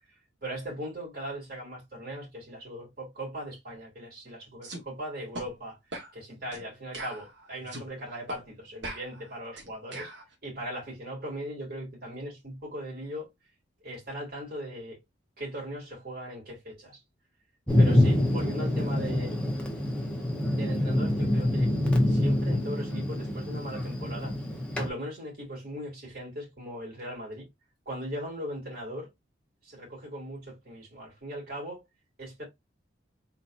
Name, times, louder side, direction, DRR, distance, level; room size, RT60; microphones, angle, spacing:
voice 1, 0.4-5.8 6.1-10.1 10.4-13.3 13.8-15.0 15.4-17.0 17.8-19.6 20.5-21.7 22.1-24.4 24.8-27.5 27.8-29.1 29.6-31.8 32.2-32.4, equal, 55° right, 3.2 m, -39 dB
sound 1, 4.6-4.8 5.3-5.5 5.9-6.1 6.5-6.7 6.9-7.9 8.3-8.4 8.8-10.2, right 2 dB, 70° right, 1.5 m, -40 dB
Thunder, 17.7-24.9, left 1 dB, 5° left, 1.0 m, -26 dB
4.1 x 4.0 x 2.6 m
head